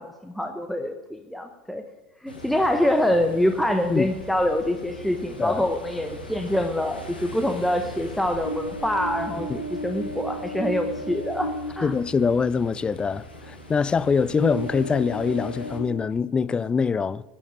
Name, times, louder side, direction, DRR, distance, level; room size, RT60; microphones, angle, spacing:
voice 1, 0.0-1.8 2.2-11.9, left 1 dB, ahead, 0.8 m, -25 dB
Ocean, 2.3-15.8, equal, 85° left, 1.8 m, -36 dB
voice 2, 11.8-17.2, left 5 dB, 20° left, 0.4 m, -24 dB
10.0 x 8.5 x 8.2 m
figure-of-eight pair, 75°, 5 cm